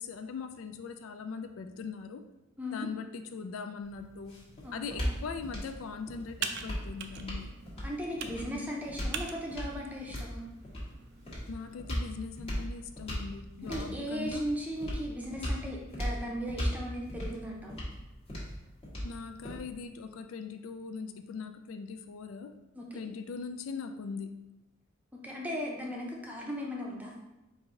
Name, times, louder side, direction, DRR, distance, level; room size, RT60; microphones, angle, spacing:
voice 1, 0.0-2.2 2.7-4.4 4.7-7.5 11.5-14.5 19.0-22.5 22.9-24.3, left 5 dB, 80° left, 7 dB, 0.3 m, -40 dB
sound 1, 3.8-19.9, equal, 30° left, 1.2 m, -38 dB
voice 2, 4.6-5.1 7.8-10.4 13.6-17.8 22.7-23.0 25.2-27.1, equal, 10° right, -2 dB, 0.6 m, -37 dB
Computer keyboard, 5.0-11.7, right 6 dB, 55° right, 0.4 m, -44 dB
4.6 x 2.6 x 3.7 m, 1.0 s
head